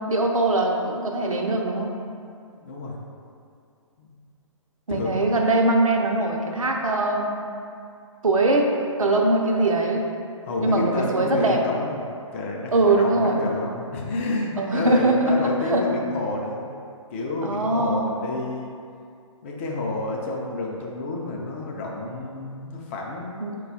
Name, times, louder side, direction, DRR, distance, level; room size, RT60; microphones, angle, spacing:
voice 1, 0.1-1.9 4.9-7.3 8.2-8.7 9.0-10.1 10.6-11.6 12.7-13.5 14.6-15.9 17.4-18.2 23.4-23.6, right 2 dB, 85° right, 1 dB, 0.6 m, -22 dB
voice 2, 2.5-3.0 4.0-4.1 4.9-5.3 10.4-12.0 12.3-16.6 17.1-18.8 19.4-23.4, left 2 dB, 25° left, -2 dB, 0.4 m, -30 dB
4.0 x 2.3 x 3.9 m, 2.4 s
figure-of-eight pair, 135°, 17 cm